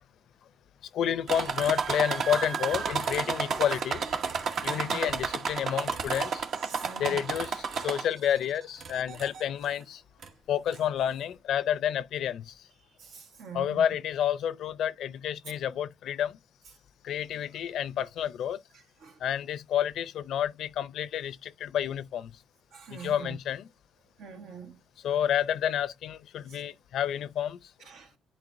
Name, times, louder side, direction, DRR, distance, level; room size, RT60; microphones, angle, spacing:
voice 1, 0.9-4.0 4.6-6.5 7.0-10.0 10.5-12.7 13.5-16.4 17.0-18.6 19.2-22.3 22.9-23.7 25.0-27.7, left 10 dB, 75° left, 0.5 m, -30 dB
sound 1, 1.3-8.3 8.8-9.4 10.2-10.3 10.7-10.8, right 5 dB, 65° right, 1.0 m, -31 dB
voice 2, 4.5-5.0 6.6-7.2 13.0-13.8 19.0-19.2 22.7-23.4 24.2-24.8 26.5-26.6 27.9-28.1, right 5 dB, 90° right, 1.4 m, -44 dB
10.5 x 4.3 x 2.6 m
cardioid pair, 90°, 0 cm